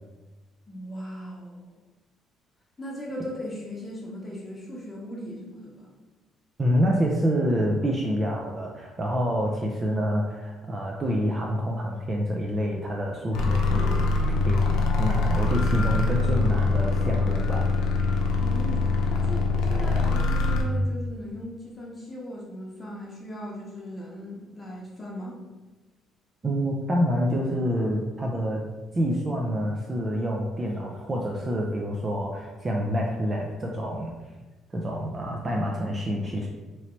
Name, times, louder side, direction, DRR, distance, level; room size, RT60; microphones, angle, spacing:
voice 1, 0.7-1.7 2.8-5.9 18.3-25.4, left 1 dB, 20° left, -4 dB, 0.9 m, -38 dB
voice 2, 6.6-14.1 14.5-17.7 26.4-28.6 28.9-34.1 34.7-36.5, equal, 25° right, -1 dB, 0.4 m, -27 dB
sound 1, 13.3-20.6, left 3 dB, 85° left, 0.6 m, -23 dB
3.0 x 2.8 x 4.4 m, 1.2 s
cardioid pair, 120°, 0 cm